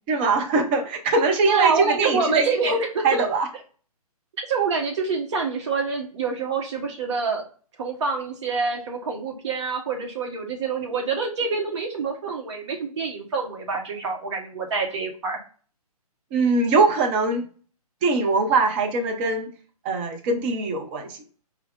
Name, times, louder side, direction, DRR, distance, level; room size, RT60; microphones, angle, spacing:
voice 1, 0.1-2.7 3.0-3.5 16.3-17.5 18.0-19.5 19.8-21.2, right 3 dB, 15° right, 5 dB, 0.4 m, -22 dB
voice 2, 1.5-3.2 4.5-7.4 7.8-15.4, right 4 dB, 45° right, 3 dB, 1.1 m, -26 dB
4.4 x 2.4 x 3.4 m, 0.40 s
hypercardioid pair, 140°, 20 cm